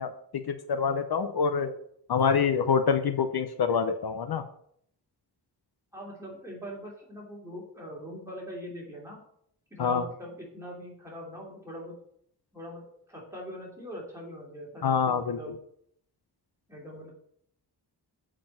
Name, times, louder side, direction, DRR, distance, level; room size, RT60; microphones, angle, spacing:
voice 1, 0.0-1.7 2.1-4.4 9.8-10.0 14.8-15.4, left 6 dB, 65° left, 9 dB, 0.7 m, -26 dB
voice 2, 5.9-9.2 9.7-12.0 12.5-12.8 13.1-15.5 16.7-17.1, equal, 5° right, -4 dB, 2.9 m, -42 dB
7.5 x 5.0 x 7.3 m, 0.67 s
wide cardioid pair, 170°, 41 cm